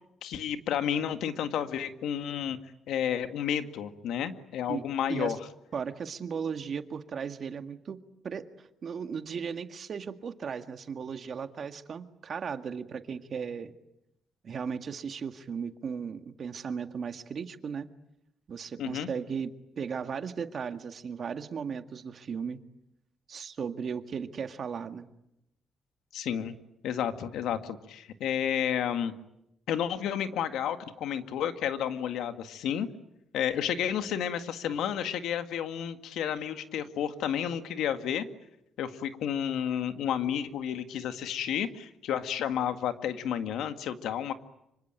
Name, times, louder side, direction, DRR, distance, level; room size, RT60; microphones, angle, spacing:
voice 1, 0.2-2.6 2.9-5.4 18.8-19.1 26.1-26.6 26.8-29.1 29.7-32.9 33.3-38.3 38.8-44.3, left 9 dB, 80° left, 9 dB, 1.9 m, -31 dB
voice 2, 5.7-13.7 14.4-17.9 18.5-19.5 19.8-22.6 23.3-25.1, right 6 dB, 50° right, 9 dB, 1.9 m, -36 dB
26.0 x 25.0 x 9.1 m, 0.85 s
cardioid pair, 90°, 0 cm